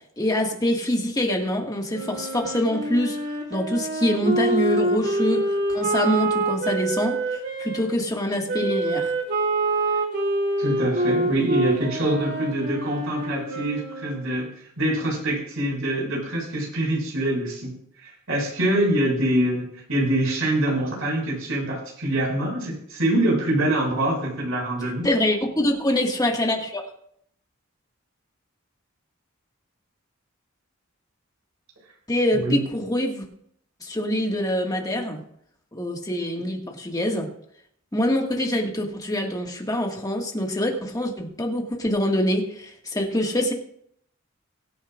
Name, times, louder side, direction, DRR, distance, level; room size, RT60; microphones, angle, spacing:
voice 1, 0.2-3.2 3.5-9.1 25.0-26.8 32.1-33.2 33.8-35.2 35.7-37.3 37.9-43.5, left 1 dB, 20° left, 1 dB, 1.9 m, -25 dB
Wind instrument woodwind instrument, 1.9-7.8 8.5-14.3, right 2 dB, 55° right, 3.2 m, -26 dB
voice 2, 10.6-14.5 14.8-17.7 18.0-25.1 32.3-32.6, right 1 dB, 80° right, -3 dB, 6.0 m, -24 dB
23.0 x 8.9 x 2.5 m, 0.68 s
head